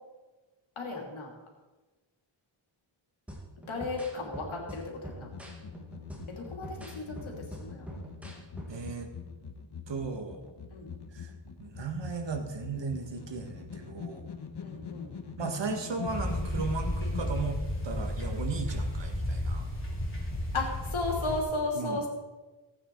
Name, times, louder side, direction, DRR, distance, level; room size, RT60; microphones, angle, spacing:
voice 1, 0.8-1.3 3.6-5.3 6.4-8.0 10.7-10.9 14.6-15.2 20.5-22.1, left 2 dB, 80° left, 0 dB, 3.1 m, -35 dB
sound 1, 3.3-8.9, right 1 dB, 5° right, 2.0 m, -45 dB
sound 2, 5.2-17.4, left 6 dB, 55° left, 1.2 m, -43 dB
voice 2, 8.7-9.1 9.9-10.4 11.1-11.3 11.6-14.3 15.4-19.7 21.7-22.1, right 4 dB, 65° right, 4 dB, 1.7 m, -36 dB
sound 3, 16.1-21.4, left 1 dB, 25° left, 3.0 m, -33 dB
15.0 x 8.9 x 4.7 m, 1.2 s
wide cardioid pair, 145°, 47 cm